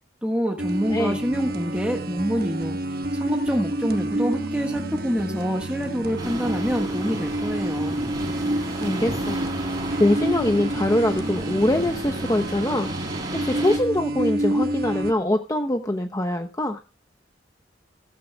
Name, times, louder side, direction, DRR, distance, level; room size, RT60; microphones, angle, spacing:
voice 1, 0.2-8.0, equal, 5° right, 1 dB, 1.5 m, -27 dB
sound 1, 0.6-15.1, right 1 dB, 55° right, 1.2 m, -29 dB
sound 2, 6.2-13.8, right 1 dB, 25° right, 5.7 m, -33 dB
voice 2, 8.8-9.4 10.0-16.8, left 1 dB, 20° left, 5 dB, 0.8 m, -23 dB
15.0 x 15.0 x 2.3 m, 0.31 s
head